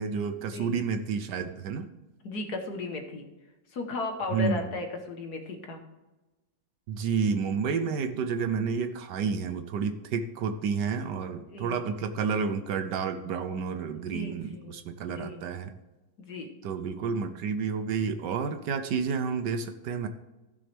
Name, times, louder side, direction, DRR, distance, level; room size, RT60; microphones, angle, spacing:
voice 1, 0.0-1.9 4.3-4.7 6.9-15.7 16.6-20.1, right 6 dB, 70° right, 9 dB, 1.2 m, -30 dB
voice 2, 2.2-3.2 3.7-5.8 11.5-11.8 14.1-14.8 15.0-15.4 16.2-16.5, left 3 dB, 55° left, 4 dB, 1.6 m, -35 dB
15.0 x 6.3 x 3.4 m, 1.1 s
omnidirectional pair, 2.1 m